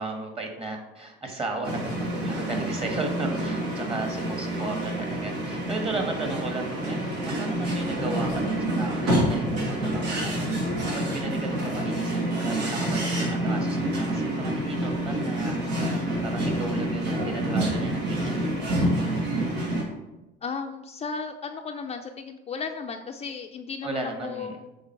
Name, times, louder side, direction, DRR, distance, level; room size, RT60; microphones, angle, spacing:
voice 1, 0.0-10.5 10.9-18.4 23.8-24.6, right 2 dB, 25° right, 3 dB, 1.6 m, -35 dB
sound 1, 1.6-19.8, right 1 dB, 85° right, 2.1 m, -27 dB
voice 2, 20.4-24.6, left 5 dB, 30° left, 4 dB, 0.5 m, -35 dB
7.4 x 3.9 x 4.5 m, 1.0 s
supercardioid pair, 105°, 21 cm